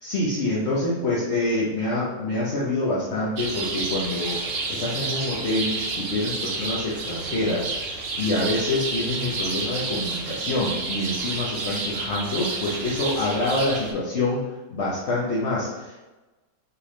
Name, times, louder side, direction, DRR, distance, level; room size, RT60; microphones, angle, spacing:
voice 1, 0.0-14.4 14.7-16.1, left 2 dB, 50° left, -6 dB, 1.0 m, -26 dB
sound 1, 3.4-13.9, right 3 dB, 55° right, 0.7 m, -30 dB
4.7 x 3.4 x 3.1 m, 1.1 s
omnidirectional pair, 1.7 m